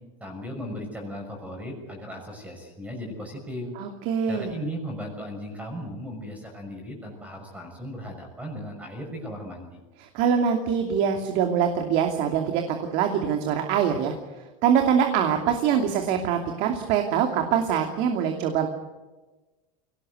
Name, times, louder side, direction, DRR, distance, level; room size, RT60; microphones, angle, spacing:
voice 1, 0.2-3.7 4.3-9.8, equal, 10° right, 2 dB, 6.1 m, -36 dB
voice 2, 3.8-4.5 10.0-12.6 12.9-14.1 14.6-18.7, right 8 dB, 50° right, 4 dB, 2.7 m, -24 dB
23.5 x 18.5 x 8.1 m, 1.1 s
supercardioid pair, 145°, 17 cm